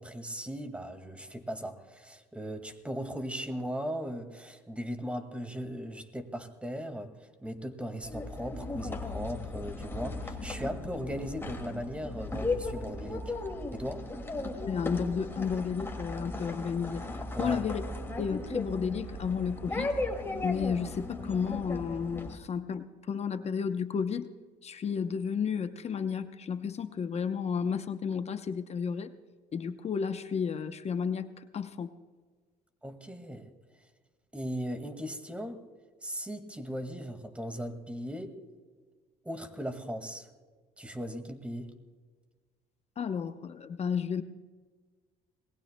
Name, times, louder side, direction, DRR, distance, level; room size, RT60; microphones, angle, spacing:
voice 1, 0.0-13.3 13.7-14.1 17.3-17.6 32.8-33.5 34.3-35.6 36.0-38.4 39.2-40.3 40.8-41.7, equal, 5° right, 7 dB, 1.9 m, -38 dB
sound 1, 8.0-22.4, left 2 dB, 15° left, 2.2 m, -36 dB
voice 2, 14.7-17.8 18.2-20.0 20.4-24.3 24.6-29.1 29.5-31.9 43.0-44.2, left 6 dB, 40° left, 9 dB, 0.8 m, -32 dB
27.0 x 20.0 x 2.2 m, 1.5 s
cardioid pair, 110°, 17 cm